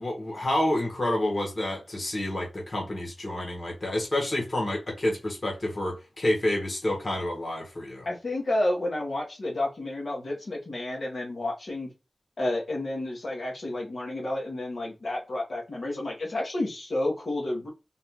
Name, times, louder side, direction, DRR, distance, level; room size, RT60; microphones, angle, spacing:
voice 1, 0.0-8.1, left 1 dB, 45° left, 1.7 m, -29 dB
voice 2, 8.1-11.9 12.4-17.7, left 1 dB, 70° left, 1.8 m, -30 dB
4.1 x 2.7 x 3.8 m
wide cardioid pair, 75°, 0 cm